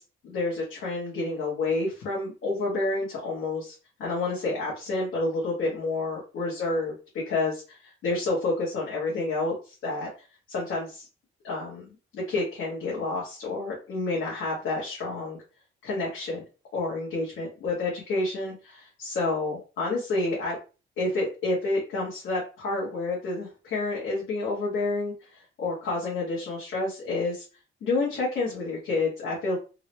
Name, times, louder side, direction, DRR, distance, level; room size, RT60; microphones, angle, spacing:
voice 1, 0.2-3.7 4.0-6.9 7.3-10.1 10.5-11.1 11.4-11.8 12.1-15.4 15.8-16.4 16.7-20.5 21.0-27.4 27.8-29.6, left 2 dB, 80° left, -5 dB, 1.4 m, -29 dB
3.7 x 2.1 x 3.0 m, 0.33 s
cardioid pair, 90°, 20 cm